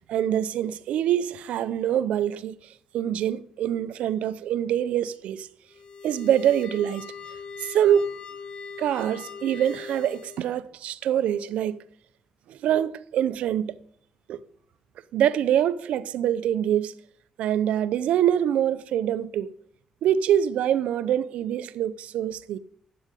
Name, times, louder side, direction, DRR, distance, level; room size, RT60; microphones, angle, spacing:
voice 1, 0.0-2.5 2.9-5.5 6.0-7.1 7.6-8.1 8.8-11.8 12.5-13.8 14.3-14.4 15.1-16.9 17.4-19.5 20.0-22.6, right 10 dB, 85° right, 0.7 m, -25 dB
sound 1, 5.7-10.6, left 6 dB, 45° left, 1.7 m, -40 dB
12.5 x 8.6 x 8.4 m
cardioid pair, 85°, 2 cm